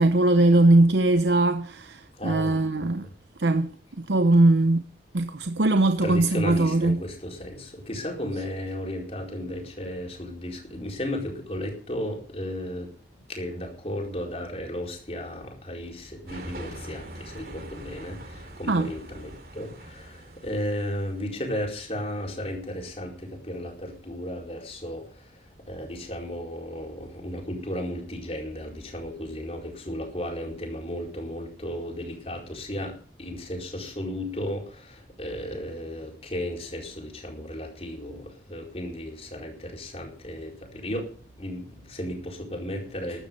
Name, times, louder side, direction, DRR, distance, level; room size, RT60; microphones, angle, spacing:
voice 1, 0.0-3.1 3.4-3.7 4.1-4.8 5.1-7.0 18.7-18.9, right 2 dB, 80° right, 0.8 m, -20 dB
voice 2, 2.1-2.6 3.0-3.1 6.0-43.3, left 1 dB, 35° left, 4.6 m, -34 dB
sound 1, 16.3-21.2, right 1 dB, 55° right, 2.9 m, -43 dB
14.0 x 12.0 x 5.4 m
head